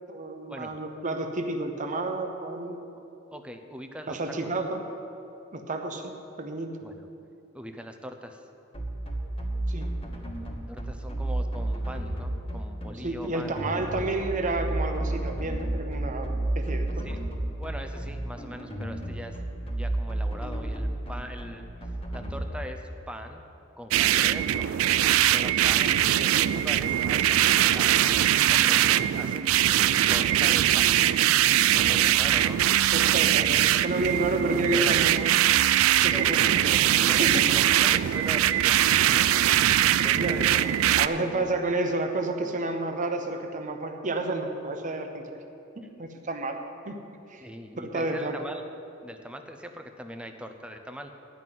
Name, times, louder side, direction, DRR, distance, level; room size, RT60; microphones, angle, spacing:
voice 1, 0.1-2.9 4.1-4.8 5.5-6.7 9.7-9.9 13.0-17.1 25.7-25.8 32.5-32.6 32.9-35.4 36.0-36.6 37.0-37.5 37.8-38.0 40.2-40.4 41.0-45.3 45.8-46.6 46.9-47.0 47.3-47.5 47.8-48.4, right 2 dB, 35° right, 4 dB, 0.9 m, -30 dB
voice 2, 3.3-4.2 6.8-7.1 7.5-8.5 10.7-14.3 17.0-23.4 23.8-27.4 27.7-29.5 30.1-31.3 31.7-32.6 33.3-33.5 33.9-34.2 35.9-41.6 47.4-48.6 49.0-51.1, equal, 5° right, 6 dB, 0.7 m, -42 dB
sound 1, 8.7-22.4, right 1 dB, 25° left, 1.5 m, -31 dB
sound 2, 23.9-41.1, right 12 dB, 75° right, 0.3 m, -22 dB
12.5 x 5.8 x 9.2 m, 2.8 s
head